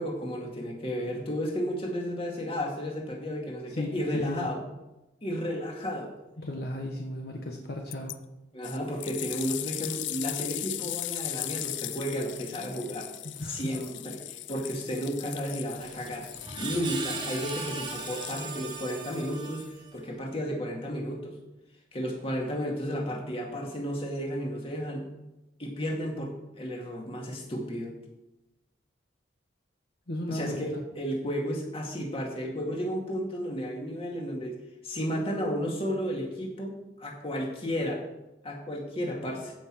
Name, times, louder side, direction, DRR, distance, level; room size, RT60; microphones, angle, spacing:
voice 1, 0.0-4.6 5.2-6.1 8.5-13.1 13.4-16.3 16.6-19.6 19.9-21.3 21.9-25.1 25.6-28.0 30.3-34.6 34.8-38.0 38.4-39.5, equal, 30° left, -1 dB, 2.2 m, -33 dB
voice 2, 3.7-4.5 6.4-8.2 13.2-13.7 30.1-30.6, left 1 dB, 60° left, 1 dB, 1.3 m, -35 dB
sound 1, 7.9-8.2 8.6-18.8 19.6-19.7, left 15 dB, 85° left, 0.5 m, -38 dB
Screech, 15.8-20.1, right 3 dB, 25° right, 1.4 m, -38 dB
15.0 x 5.9 x 4.7 m, 0.98 s
head